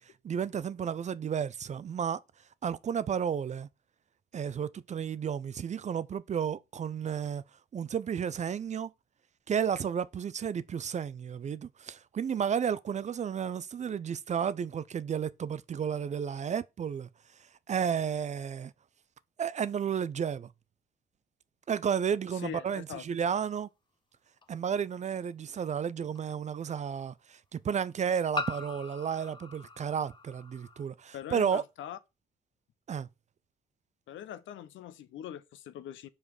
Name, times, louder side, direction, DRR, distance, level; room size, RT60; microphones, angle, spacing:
voice 1, 0.2-2.2 2.6-3.7 4.3-7.4 7.7-8.9 9.5-17.1 17.7-18.7 19.4-20.5 21.7-23.7 24.5-31.6 32.9-33.1, right 7 dB, 35° right, 0.4 m, -32 dB
voice 2, 22.4-23.0 31.1-32.0 34.1-36.1, left 10 dB, 75° left, 0.7 m, -42 dB
sound 1, 24.4-24.5 26.1-26.2 28.3-30.8, left 3 dB, 25° left, 0.8 m, -40 dB
5.3 x 5.0 x 4.7 m
cardioid pair, 90°, 20 cm